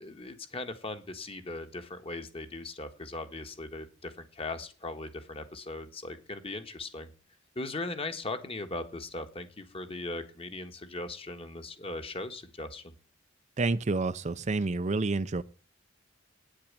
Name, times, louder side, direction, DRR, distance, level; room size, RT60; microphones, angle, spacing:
voice 1, 0.0-7.1 7.5-12.8, left 2 dB, 30° left, 1.4 m, -39 dB
voice 2, 13.6-15.4, right 3 dB, 35° right, 0.5 m, -29 dB
9.3 x 8.8 x 8.6 m
head